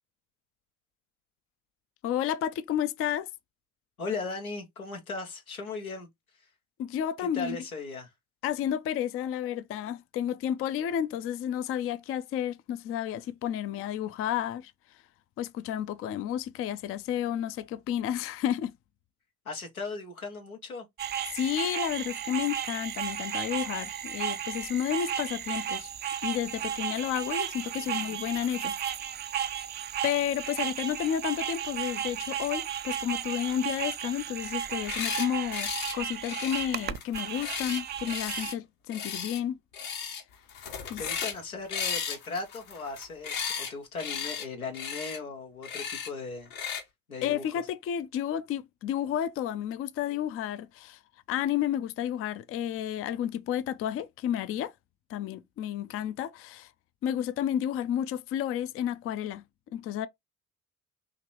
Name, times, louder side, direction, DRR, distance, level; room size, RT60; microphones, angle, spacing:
voice 1, 2.0-3.3 6.8-7.6 8.4-14.7 15.4-18.7 21.3-25.9 26.2-28.7 30.0-39.6 40.9-41.1 47.2-51.0 51.3-54.7 55.1-56.7 57.0-59.4 59.7-60.1, left 10 dB, 35° left, 0.4 m, -31 dB
voice 2, 4.0-6.1 7.2-8.1 19.4-20.9 27.8-28.1 41.0-46.5 47.1-47.4, left 4 dB, 85° left, 1.0 m, -37 dB
sound 1, 21.0-38.5, right 10 dB, 25° right, 0.4 m, -34 dB
sound 2, 34.7-35.3 35.5-35.9 36.2-38.5 38.9-39.4 39.7-40.2 40.5-41.4 41.7-43.7 44.0-44.5 44.7-45.2 45.6-46.1 46.5-46.8, left 7 dB, 65° left, 1.3 m, -35 dB
5.0 x 2.9 x 3.0 m
figure-of-eight pair, 50°, 42 cm